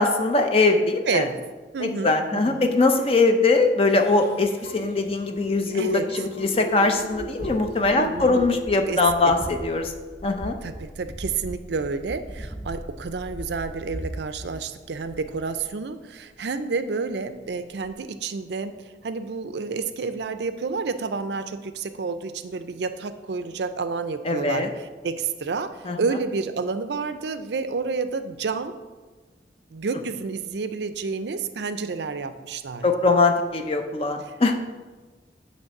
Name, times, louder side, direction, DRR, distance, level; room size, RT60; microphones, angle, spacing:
voice 1, 0.0-1.3 1.8-9.9 10.2-10.6 24.2-24.7 25.8-26.0 32.8-34.6, left 3 dB, 35° left, 5 dB, 0.6 m, -21 dB
voice 2, 1.1-1.4 1.7-2.7 5.7-6.1 7.9-8.5 8.9-9.1 10.6-28.7 29.7-32.8 34.2-34.4, right 4 dB, 70° right, 11 dB, 0.5 m, -30 dB
sound 1, 3.9-9.2, right 2 dB, 70° left, 2.0 m, -40 dB
sound 2, 6.9-15.8 17.3-17.5 17.8-17.9, right 1 dB, 5° right, 0.9 m, -38 dB
8.8 x 3.3 x 6.5 m, 1.3 s
head